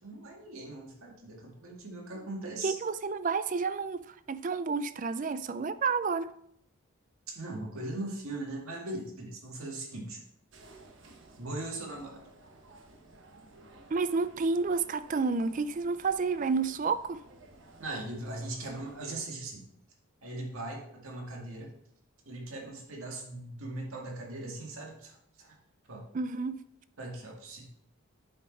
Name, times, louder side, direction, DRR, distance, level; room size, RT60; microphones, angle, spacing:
voice 1, 0.0-2.8 7.3-10.2 11.4-12.2 17.8-19.6 20.2-21.7 22.3-25.1 25.4-25.5 25.9-26.0 27.0-27.7, right 2 dB, 75° right, 2.0 m, -39 dB
voice 2, 2.6-6.3 13.9-17.2 26.1-26.6, right 4 dB, 35° right, 0.4 m, -30 dB
sound 1, 10.5-19.0, right 2 dB, 60° right, 1.1 m, -55 dB
8.4 x 5.6 x 4.1 m
head